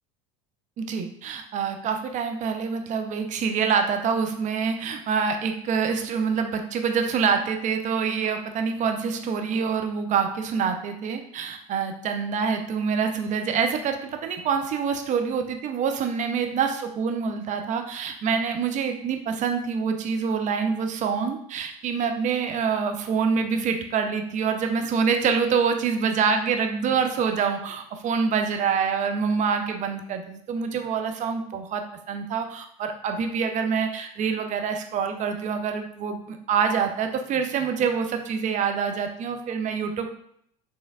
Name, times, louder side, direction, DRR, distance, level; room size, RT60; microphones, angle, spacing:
voice 1, 0.8-40.1, right 6 dB, 40° right, 6 dB, 0.7 m, -26 dB
5.3 x 3.1 x 2.4 m, 0.68 s
hypercardioid pair, 85°, 19 cm